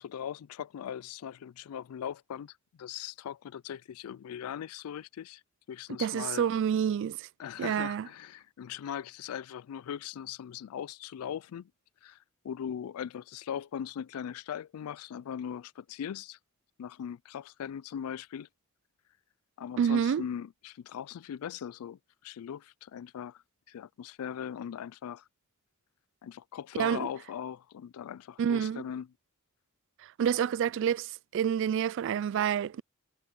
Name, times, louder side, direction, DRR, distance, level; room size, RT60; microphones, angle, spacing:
voice 1, 0.0-5.4 5.7-6.4 7.4-11.7 12.0-12.2 12.4-16.4 16.8-18.5 19.6-23.4 23.7-25.2 26.2-29.1, left 8 dB, 85° left, 0.3 m, -40 dB
voice 2, 6.0-7.3 7.6-8.1 19.8-20.2 26.8-27.1 28.4-28.8 30.0-32.8, right 8 dB, 60° right, 0.3 m, -28 dB
head